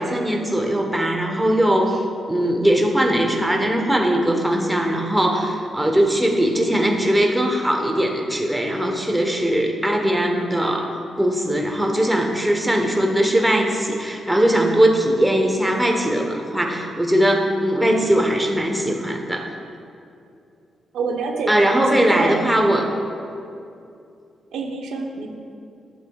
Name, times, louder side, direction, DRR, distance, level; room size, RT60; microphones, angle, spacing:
voice 1, 0.0-2.0 2.3-10.9 11.2-19.5 21.5-22.9, right 1 dB, 10° right, 1 dB, 1.1 m, -20 dB
voice 2, 20.9-22.4 24.5-25.3, right 4 dB, 90° right, 2 dB, 0.7 m, -27 dB
11.5 x 7.4 x 2.4 m, 2.5 s
cardioid pair, 70°, 0 cm